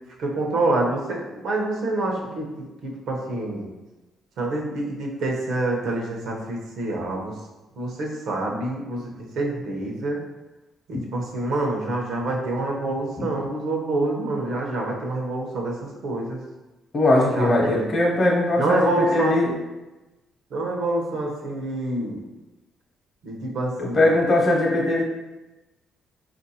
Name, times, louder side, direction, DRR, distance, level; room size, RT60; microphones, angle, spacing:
voice 1, 0.2-3.7 4.4-7.3 7.8-10.2 10.9-16.4 17.3-17.9 18.6-19.4 20.5-22.2 23.2-24.2, right 2 dB, 80° right, -1 dB, 0.7 m, -27 dB
voice 2, 16.9-19.6 23.8-25.0, left 1 dB, 40° left, -3 dB, 0.8 m, -20 dB
3.8 x 2.5 x 2.7 m, 1.1 s
cardioid pair, 90°, 0 cm